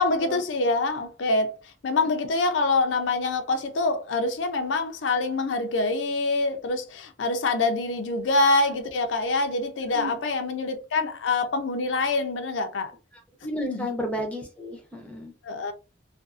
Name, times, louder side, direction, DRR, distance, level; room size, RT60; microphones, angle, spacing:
voice 1, 0.0-1.5 1.8-12.9 13.7-13.9 15.4-15.7, left 3 dB, 85° left, 0.5 m, -25 dB
voice 2, 13.1-15.3, equal, 5° left, 0.6 m, -33 dB
2.5 x 2.4 x 2.4 m
head